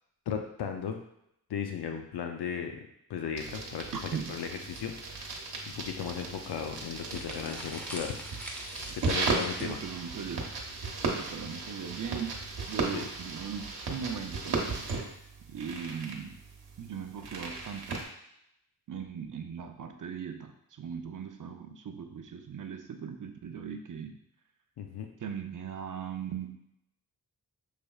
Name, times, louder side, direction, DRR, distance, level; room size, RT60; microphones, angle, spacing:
voice 1, 0.3-1.0 1.5-5.4 5.8-8.2 9.0-9.8 12.9-13.1 24.8-25.1, left 7 dB, 85° left, 5 dB, 0.5 m, -36 dB
sound 1, 3.4-18.0, right 3 dB, 85° right, 1.0 m, -36 dB
voice 2, 3.9-4.3 9.6-10.5 11.1-14.6 15.5-16.4 16.8-18.0 18.9-24.2 25.2-26.6, right 7 dB, 55° right, 5 dB, 0.6 m, -39 dB
sound 2, 6.0-10.0, equal, 5° left, 0.8 m, -45 dB
6.3 x 3.3 x 2.3 m, 0.78 s
cardioid pair, 60°, 39 cm